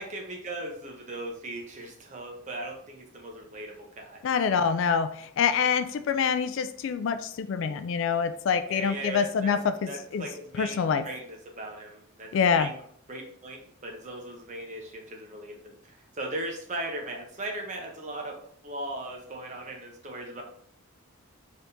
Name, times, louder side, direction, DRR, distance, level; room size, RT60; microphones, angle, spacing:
voice 1, 0.0-4.2 8.7-9.5 9.9-12.8 13.1-20.4, right 2 dB, 35° right, 1 dB, 0.8 m, -38 dB
voice 2, 4.2-10.3 10.6-11.0 12.3-12.7, left 6 dB, 60° left, 11 dB, 0.3 m, -26 dB
4.4 x 3.6 x 2.6 m, 0.64 s
head